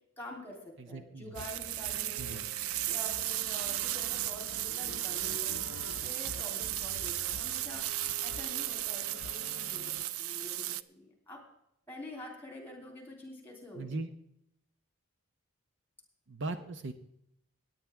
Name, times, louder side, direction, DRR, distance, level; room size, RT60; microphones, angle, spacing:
voice 1, 0.2-2.4 2.9-7.8 8.2-11.4 11.9-14.0, left 1 dB, 10° left, 1 dB, 3.3 m, -47 dB
voice 2, 0.8-1.3 2.2-2.5 13.7-14.1 16.3-16.9, right 2 dB, 55° right, 9 dB, 0.8 m, -39 dB
sound 1, 1.4-10.0, left 4 dB, 70° left, 0.5 m, -48 dB
sound 2, 1.4-10.8, right 14 dB, 75° right, 0.4 m, -35 dB
17.5 x 9.6 x 3.5 m, 0.76 s
head